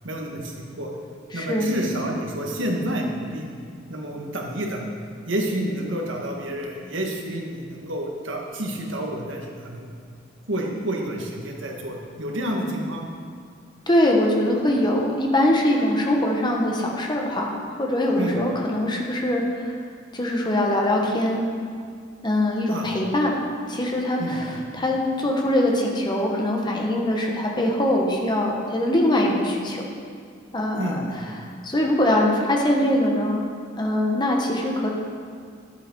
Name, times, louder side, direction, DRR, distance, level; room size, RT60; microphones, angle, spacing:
voice 1, 0.0-0.9 1.3-3.5 3.9-4.9 5.3-9.9 10.5-13.1 18.2-18.4 22.7-22.9 24.2-24.6 30.8-31.3, right 1 dB, 75° right, 0 dB, 1.5 m, -29 dB
voice 2, 1.3-1.7 13.9-17.5 17.8-19.8 20.1-21.5 22.2-23.4 23.7-24.5 24.7-29.8 30.5-31.0 31.4-33.4 33.8-34.9, left 1 dB, 25° left, 0 dB, 1.2 m, -22 dB
10.5 x 7.9 x 4.6 m, 2.2 s
head